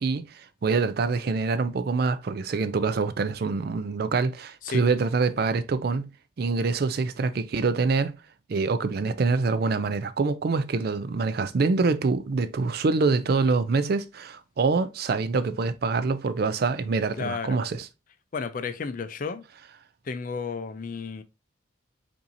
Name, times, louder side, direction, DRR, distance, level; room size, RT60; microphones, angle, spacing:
voice 1, 0.0-6.1 6.4-8.2 8.5-17.9, right 4 dB, 50° right, 0.4 m, -25 dB
voice 2, 17.2-17.6 18.3-19.4 20.1-21.2, left 5 dB, 40° left, 0.4 m, -32 dB
5.6 x 2.7 x 2.6 m
head